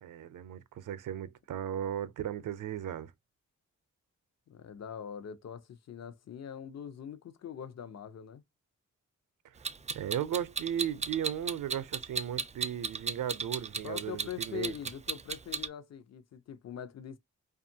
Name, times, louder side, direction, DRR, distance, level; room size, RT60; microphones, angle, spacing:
voice 1, 0.0-3.1 9.9-14.7, right 10 dB, 80° right, 0.5 m, -36 dB
voice 2, 4.5-8.4 13.8-17.2, left 9 dB, 55° left, 0.6 m, -43 dB
Clock, 9.6-15.7, right 5 dB, 20° right, 0.4 m, -34 dB
2.5 x 2.4 x 2.7 m
cardioid pair, 80°, 31 cm